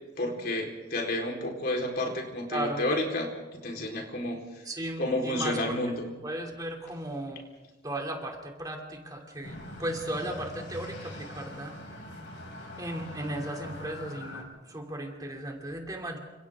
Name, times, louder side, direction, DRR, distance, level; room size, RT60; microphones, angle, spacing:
voice 1, 0.2-4.4 5.0-6.1, left 1 dB, 50° left, 0 dB, 4.2 m, -30 dB
voice 2, 2.5-2.8 4.6-5.8 6.2-7.5 7.8-11.7 12.8-16.2, right 1 dB, 20° right, 2 dB, 2.9 m, -36 dB
sound 1, 9.4-14.4, left 1 dB, 70° left, 5.5 m, -43 dB
29.5 x 27.0 x 3.7 m, 1.1 s
head